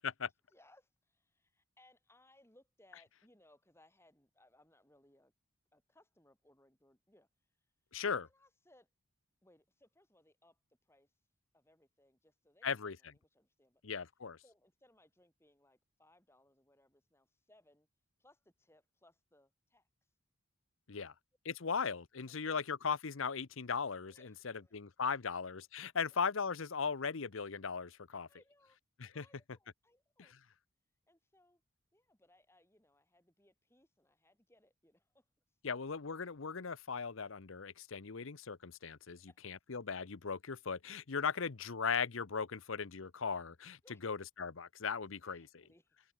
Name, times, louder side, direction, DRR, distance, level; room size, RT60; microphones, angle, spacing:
voice 1, 0.5-5.3 5.7-7.3 8.2-8.9 9.4-11.1 11.5-13.8 14.4-17.9 18.2-19.9 21.6-21.7 24.1-24.9 28.3-28.8 29.1-30.3 31.1-31.6 31.9-35.3 39.1-39.4 43.8-44.1 45.2-46.0, left 1 dB, 10° left, 4.8 m, -68 dB
voice 2, 7.9-8.3 12.6-13.0 13.8-14.4 20.9-21.1 21.4-24.1 24.4-28.3 29.0-29.2 35.6-39.2 39.4-45.6, left 5 dB, 70° left, 0.8 m, -38 dB
head